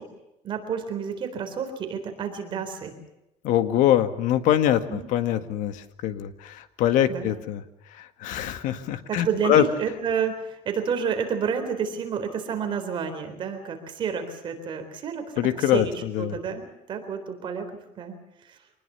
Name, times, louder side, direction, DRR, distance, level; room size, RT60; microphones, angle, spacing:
voice 1, 0.4-2.9 4.9-5.1 7.1-7.3 9.1-15.3 15.7-15.9 16.2-17.7 18.0-18.6, right 6 dB, 40° right, 6 dB, 3.8 m, -30 dB
voice 2, 3.4-7.6 7.9-9.6 15.4-16.4, left 11 dB, 75° left, 10 dB, 1.8 m, -24 dB
25.0 x 20.0 x 7.0 m, 0.89 s
cardioid pair, 170°, 13 cm